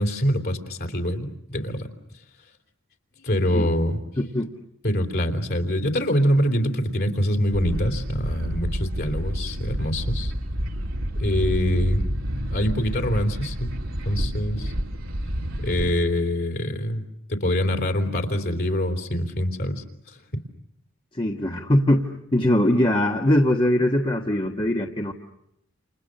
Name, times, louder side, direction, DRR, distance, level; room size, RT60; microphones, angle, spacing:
voice 1, 0.0-1.9 3.2-4.0 4.8-10.3 11.2-12.0 12.5-13.8 14.1-14.7 15.6-20.4, equal, 50° left, 5 dB, 3.5 m, -25 dB
voice 2, 4.2-4.5 21.1-25.1, left 1 dB, 25° left, 0 dB, 1.5 m, -21 dB
sound 1, 7.5-15.9, equal, 75° right, 3.1 m, -29 dB
29.5 x 29.0 x 6.6 m, 0.80 s
head